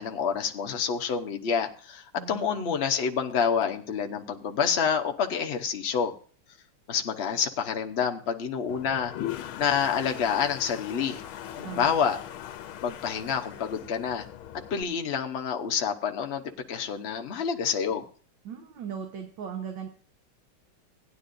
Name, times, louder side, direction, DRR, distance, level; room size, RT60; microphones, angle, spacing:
voice 1, 0.0-6.1 6.9-9.1 9.6-11.2 11.6-12.2 12.8-14.2 14.7-16.4 16.7-18.1, left 7 dB, 55° left, 4 dB, 0.7 m, -28 dB
voice 2, 2.2-2.7 11.6-12.0 18.5-19.9, right 7 dB, 65° right, 3 dB, 1.7 m, -38 dB
Toilet flush, 8.7-14.8, left 11 dB, 80° left, 1.5 m, -40 dB
17.0 x 9.8 x 2.6 m, 0.42 s
omnidirectional pair, 2.3 m